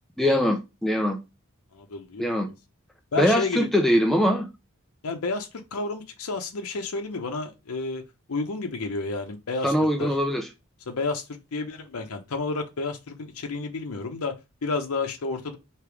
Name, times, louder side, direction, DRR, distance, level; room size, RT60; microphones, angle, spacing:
voice 1, 0.2-1.2 2.2-2.5 3.2-4.5 9.6-10.5, equal, ahead, 0.3 m, -22 dB
voice 2, 1.7-2.5 3.1-3.7 5.0-8.0 8.3-9.7 10.0-10.1 10.9-11.2 11.5-15.6, left 3 dB, 80° left, 0.7 m, -31 dB
3.3 x 2.9 x 4.6 m
head